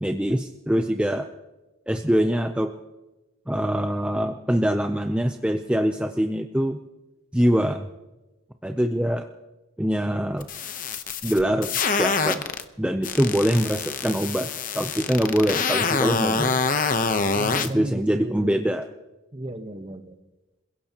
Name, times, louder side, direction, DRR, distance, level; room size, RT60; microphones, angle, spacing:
voice 1, 0.0-1.3 1.9-2.7 3.5-6.8 7.3-7.9 8.6-9.3 9.8-10.5 11.2-12.4 12.8-14.5 14.7-16.6 17.7-18.8, equal, 5° right, 5 dB, 0.5 m, -24 dB
sound 1, 10.4-12.6 13.0-17.7, left 4 dB, 40° left, 0.8 m, -25 dB
voice 2, 17.3-18.7 19.3-20.2, right 1 dB, 25° right, 8 dB, 1.0 m, -34 dB
28.0 x 16.5 x 2.9 m, 1.1 s
head